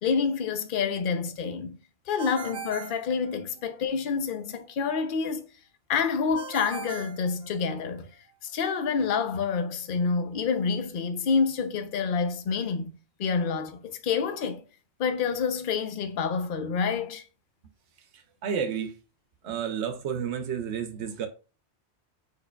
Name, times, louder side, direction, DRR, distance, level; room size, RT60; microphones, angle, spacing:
voice 1, 0.0-1.8 2.1-5.4 5.9-8.1 8.4-12.9 13.2-14.6 15.0-17.2, left 5 dB, 55° left, 0.7 m, -28 dB
Ringtone, 2.2-3.9 6.4-8.0, right 7 dB, 50° right, 0.4 m, -41 dB
voice 2, 18.1-19.0 19.4-21.3, right 7 dB, 80° right, 0.9 m, -31 dB
5.0 x 4.5 x 2.2 m
omnidirectional pair, 1.1 m